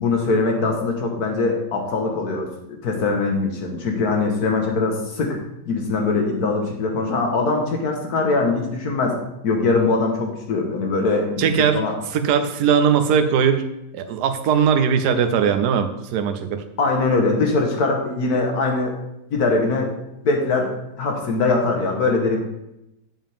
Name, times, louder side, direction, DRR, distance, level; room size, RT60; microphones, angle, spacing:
voice 1, 0.0-5.4 5.7-9.2 9.4-11.9 16.8-19.0 19.3-20.0 20.2-22.4, left 3 dB, 65° left, 2 dB, 1.8 m, -22 dB
voice 2, 11.4-11.8 12.1-13.6 13.9-16.6, right 7 dB, 75° right, 8 dB, 1.3 m, -19 dB
7.5 x 7.3 x 3.5 m, 0.87 s
omnidirectional pair, 1.8 m